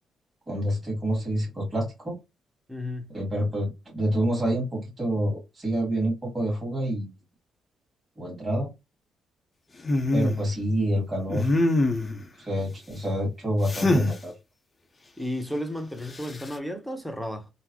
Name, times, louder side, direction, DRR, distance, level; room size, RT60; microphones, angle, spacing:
voice 1, 0.5-2.2 3.1-7.1 8.2-8.7 10.1-11.5 12.4-14.3, right 1 dB, 20° right, 1.9 m, -27 dB
voice 2, 2.7-3.1 15.2-17.5, left 1 dB, ahead, 0.9 m, -33 dB
sound 1, 9.8-10.4 11.3-12.2 13.7-14.2 16.1-16.5, left 2 dB, 25° left, 0.6 m, -24 dB
3.8 x 2.0 x 2.9 m
cardioid pair, 90°, 0 cm